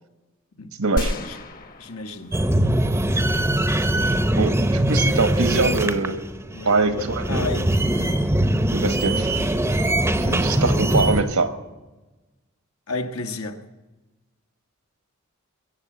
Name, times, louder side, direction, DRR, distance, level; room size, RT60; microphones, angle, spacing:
voice 1, 0.8-1.1 4.3-6.2 6.6-7.5 8.7-9.3 10.2-11.5, right 3 dB, 75° right, 1.5 m, -23 dB
sound 1, 1.0-2.9 3.2-3.3, left 1 dB, 40° left, 1.2 m, -31 dB
voice 2, 1.8-2.4 6.5-7.7 10.2-10.8 12.9-13.6, left 3 dB, 70° left, 1.3 m, -33 dB
sound 2, 2.3-11.2, right 1 dB, 10° right, 0.8 m, -22 dB
22.5 x 7.7 x 7.7 m
head